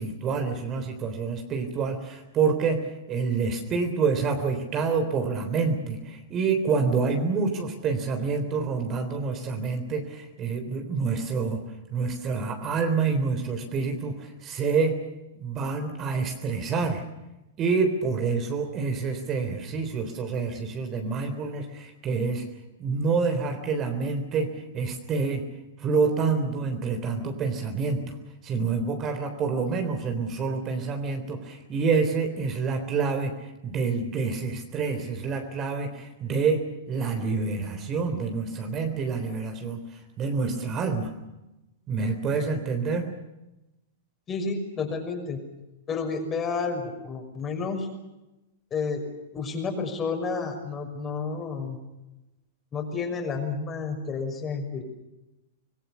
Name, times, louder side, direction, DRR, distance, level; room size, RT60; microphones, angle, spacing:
voice 1, 0.0-2.8 3.1-11.6 11.9-15.0 15.4-17.0 17.6-22.4 22.8-24.5 24.7-25.4 25.8-28.0 28.4-33.3 33.6-36.6 36.9-39.8 40.2-41.1 41.9-43.1, right 4 dB, 30° right, 6 dB, 3.6 m, -27 dB
voice 2, 44.3-45.4 45.9-47.9 48.7-49.0 49.3-51.8 52.7-54.8, left 4 dB, 25° left, 4 dB, 6.0 m, -30 dB
26.0 x 21.0 x 7.0 m, 0.97 s
figure-of-eight pair, 105°, 0 cm